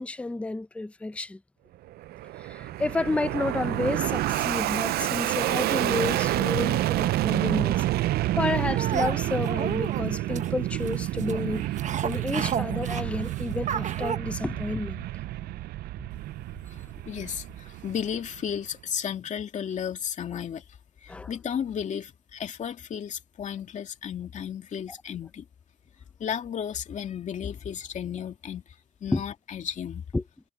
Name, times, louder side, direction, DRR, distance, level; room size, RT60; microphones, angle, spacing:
voice 1, 0.0-1.4 2.4-7.8 8.4-11.7 12.0-15.0 21.1-21.3 29.1-29.2 30.1-30.2, left 2 dB, 5° left, 0.6 m, -30 dB
Fixed-wing aircraft airplane, 1.9-18.5, right 15 dB, 70° right, 0.5 m, -29 dB
sound 1, 8.7-14.2, right 8 dB, 45° right, 1.3 m, -33 dB
voice 2, 16.7-20.6 21.0-25.4 26.2-30.0, left 8 dB, 45° left, 2.5 m, -34 dB
cardioid pair, 110°, 17 cm